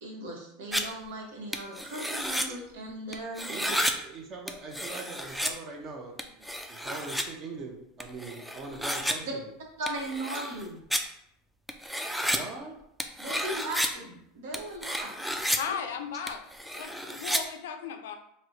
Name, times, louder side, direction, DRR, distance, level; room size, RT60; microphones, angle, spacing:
voice 1, 0.0-3.5 9.2-9.3 9.8-10.8 13.2-15.1, right 1 dB, 80° right, -1 dB, 1.0 m, -37 dB
sound 1, 0.7-0.8 1.5-2.5 3.1-3.9 4.5-5.5 6.2-7.2 8.0-9.1 9.9-10.6 10.9-11.0 11.7-12.4 13.0-13.9 14.5-15.6 16.3-17.4, equal, ahead, 0.3 m, -31 dB
voice 2, 3.5-9.5 12.3-12.7, right 3 dB, 40° right, 1 dB, 0.6 m, -41 dB
voice 3, 15.6-16.4 16.7-18.1, left 7 dB, 85° left, 7 dB, 0.4 m, -36 dB
4.2 x 2.1 x 2.6 m, 0.75 s
supercardioid pair, 115°, 0 cm